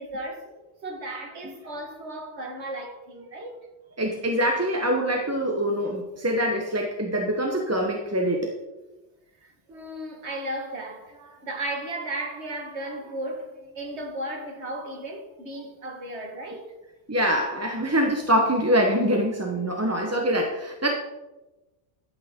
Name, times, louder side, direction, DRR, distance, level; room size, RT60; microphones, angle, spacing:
voice 1, 0.0-3.6 9.4-16.7, right 1 dB, 65° right, 1.9 m, -35 dB
voice 2, 4.0-8.5 17.1-20.9, equal, 15° right, 0.7 m, -24 dB
12.0 x 8.7 x 3.6 m
omnidirectional pair, 1.2 m